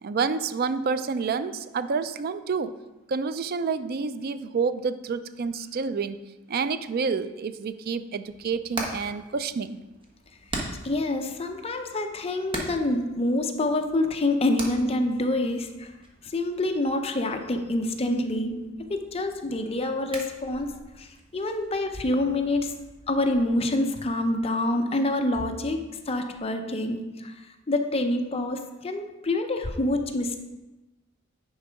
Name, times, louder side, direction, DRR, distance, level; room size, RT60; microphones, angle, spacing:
voice 1, 0.0-2.8 3.1-9.8, right 5 dB, 45° right, 13 dB, 0.4 m, -29 dB
Hammer, 8.2-23.5, right 1 dB, 25° right, 1.1 m, -42 dB
voice 2, 10.5-15.9 16.2-20.7 21.0-22.8 23.1-27.3 27.7-30.4, left 1 dB, 30° left, 5 dB, 0.6 m, -27 dB
9.5 x 3.8 x 5.0 m, 1.1 s
head